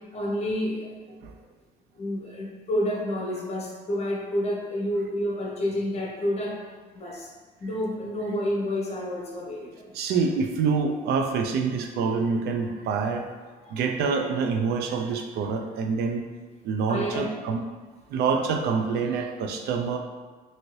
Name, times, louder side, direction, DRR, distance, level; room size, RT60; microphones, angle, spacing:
voice 1, 0.1-1.2 2.0-6.6 6.9-7.3 7.6-9.9 13.7-13.8 16.9-17.5, equal, 40° left, -2 dB, 0.7 m, -29 dB
voice 2, 9.9-13.3 13.7-16.3 16.6-17.6 18.1-20.0, right 5 dB, 75° right, 4 dB, 0.4 m, -26 dB
2.7 x 2.6 x 3.0 m, 1.4 s
cardioid pair, 110°, 17 cm